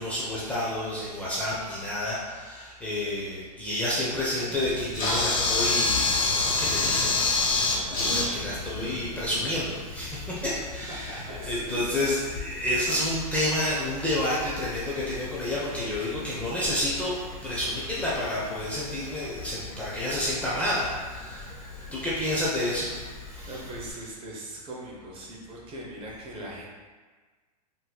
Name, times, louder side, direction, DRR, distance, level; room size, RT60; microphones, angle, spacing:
voice 1, 0.0-17.2 17.4-21.5 21.9-23.5, left 1 dB, 5° left, -8 dB, 0.5 m, -30 dB
sound 1, 4.3-9.5, right 1 dB, 45° right, 1.0 m, -45 dB
Camera, 4.6-23.9, left 3 dB, 25° left, 1.1 m, -31 dB
voice 2, 10.9-11.9 12.6-12.7 23.4-26.7, right 1 dB, 25° right, -3 dB, 0.7 m, -40 dB
3.9 x 2.7 x 2.2 m, 1.4 s
hypercardioid pair, 130°, 21 cm